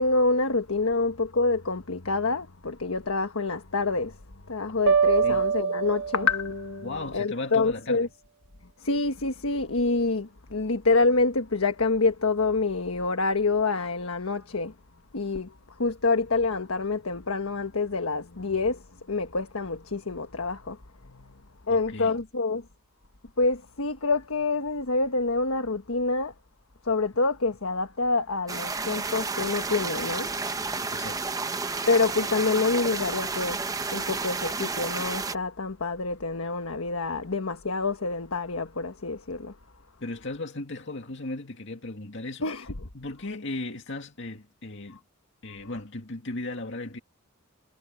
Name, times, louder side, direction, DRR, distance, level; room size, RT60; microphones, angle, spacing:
voice 1, 0.0-4.1 4.5-8.1 8.8-14.7 15.1-15.5 15.8-18.8 19.1-20.8 21.7-22.6 23.4-26.3 26.8-30.3 31.9-33.6 33.9-39.5 42.4-42.6 45.6-45.7, left 3 dB, 85° left, 1.4 m, -27 dB
sound 1, 4.9-6.7, right 6 dB, 60° right, 1.7 m, -24 dB
voice 2, 6.8-8.1 21.7-22.1 30.9-31.3 40.0-42.7 42.9-45.0 45.4-47.0, left 2 dB, 60° left, 2.2 m, -36 dB
sound 2, 28.5-35.3, right 4 dB, 15° right, 0.8 m, -31 dB
head